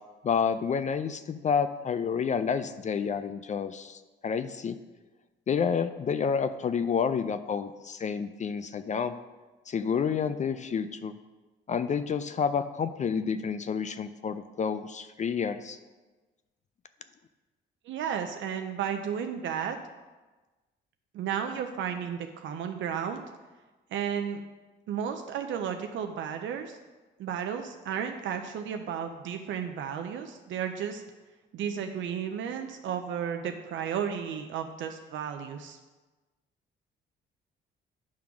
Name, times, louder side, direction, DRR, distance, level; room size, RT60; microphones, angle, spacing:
voice 1, 0.2-4.8 5.5-9.2 9.7-11.1 11.7-15.8, left 6 dB, 40° left, 12 dB, 0.4 m, -29 dB
voice 2, 17.9-19.8 21.1-23.2 23.9-24.4 24.9-26.8 27.2-31.0 31.5-35.8, right 8 dB, 75° right, 6 dB, 0.5 m, -33 dB
8.6 x 3.7 x 5.9 m, 1.2 s
cardioid pair, 90°, 20 cm